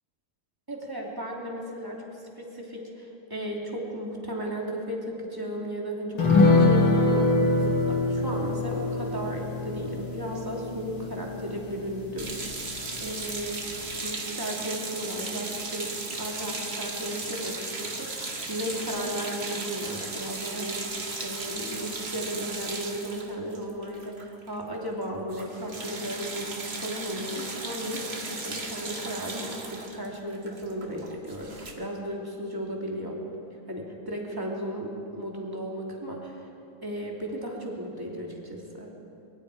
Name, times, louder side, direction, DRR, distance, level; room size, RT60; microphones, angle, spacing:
voice 1, 0.7-2.0 2.4-13.6 14.0-15.9 16.2-33.2 33.7-36.5 36.8-38.9, equal, 10° right, -2 dB, 2.9 m, -35 dB
sound 1, 6.2-13.0 13.3-13.4 13.7-13.9, left 2 dB, 75° left, 3.3 m, -24 dB
sound 2, 12.2-24.6 24.8-25.0 25.3-31.7, right 3 dB, 30° right, 1.8 m, -36 dB
24.0 x 23.0 x 5.0 m, 2.7 s
omnidirectional pair, 2.4 m